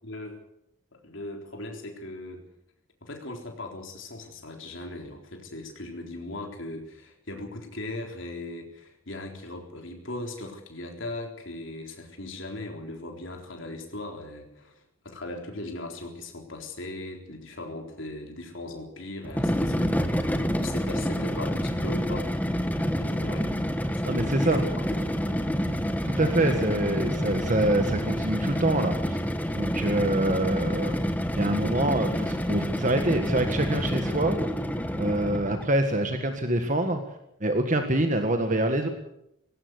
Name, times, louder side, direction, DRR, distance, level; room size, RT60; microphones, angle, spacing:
voice 1, 0.0-0.4 0.9-2.4 3.0-22.3 22.9-23.5 23.9-24.7 25.0-25.1 26.3-26.8, left 2 dB, 60° left, 3 dB, 3.9 m, -38 dB
sound 1, 19.2-35.7, equal, 5° left, 1.3 m, -28 dB
voice 2, 24.1-24.6 26.0-29.2 29.5-31.0 31.3-34.4 35.0-37.0 37.4-38.9, right 1 dB, 35° right, 6 dB, 1.7 m, -25 dB
19.0 x 17.5 x 8.1 m, 0.78 s
head